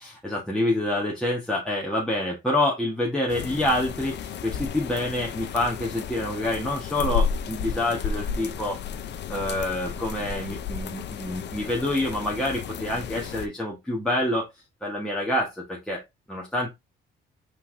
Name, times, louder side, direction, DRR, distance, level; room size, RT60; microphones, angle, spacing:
voice 1, 0.0-8.8 9.3-14.5 14.8-16.0 16.3-16.7, left 1 dB, 5° left, 1.4 m, -27 dB
sound 1, 3.3-13.5, left 6 dB, 60° left, 0.6 m, -32 dB
5.6 x 3.5 x 2.7 m
cardioid pair, 90°, 20 cm